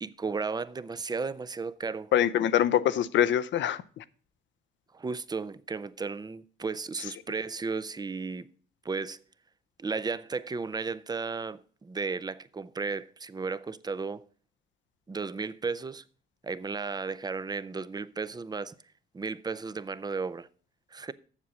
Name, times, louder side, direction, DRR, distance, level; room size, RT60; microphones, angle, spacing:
voice 1, 0.0-2.1 4.9-8.5 8.8-9.2 9.8-14.3 15.1-16.0 16.4-18.8 19.1-20.5 20.9-21.1, right 4 dB, 20° right, 0.5 m, -34 dB
voice 2, 2.1-4.0, left 10 dB, 70° left, 0.6 m, -24 dB
7.4 x 7.0 x 6.1 m
cardioid pair, 90°, 20 cm